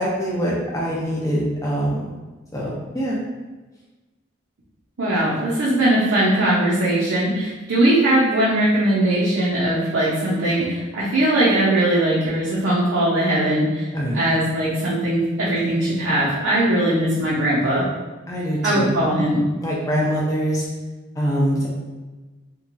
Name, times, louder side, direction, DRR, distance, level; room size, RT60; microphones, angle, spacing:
voice 1, 0.0-2.0 2.5-3.2 13.9-14.2 18.3-19.0 19.6-20.7 21.2-21.7, equal, 15° left, -5 dB, 0.5 m, -23 dB
voice 2, 5.0-13.9 14.1-17.8 18.6-19.4, right 1 dB, 85° right, -8 dB, 0.6 m, -20 dB
2.9 x 2.2 x 2.6 m, 1.2 s
head